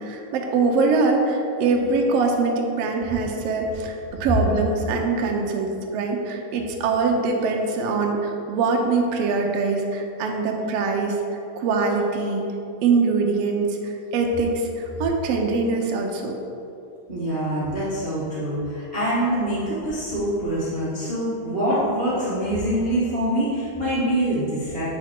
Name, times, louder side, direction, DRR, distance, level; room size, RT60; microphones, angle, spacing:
voice 1, 0.0-12.5 12.8-16.4, right 4 dB, 85° right, 1 dB, 1.4 m, -23 dB
voice 2, 17.1-24.9, right 1 dB, 65° right, -11 dB, 0.5 m, -25 dB
8.2 x 4.0 x 4.4 m, 2.7 s
omnidirectional pair, 3.6 m